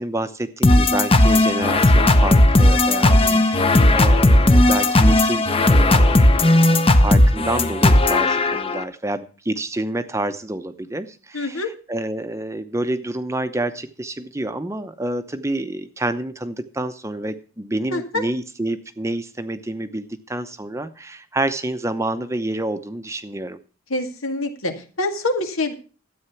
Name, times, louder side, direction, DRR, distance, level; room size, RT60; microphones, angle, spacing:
voice 1, 0.0-23.6, right 1 dB, 15° right, 10 dB, 0.7 m, -28 dB
sound 1, 0.6-8.8, left 1 dB, 25° left, 0.8 m, -15 dB
voice 2, 3.0-3.4 11.3-11.7 17.9-18.2 23.9-25.7, left 2 dB, 85° left, 6 dB, 2.0 m, -26 dB
13.0 x 8.7 x 5.8 m, 0.37 s
head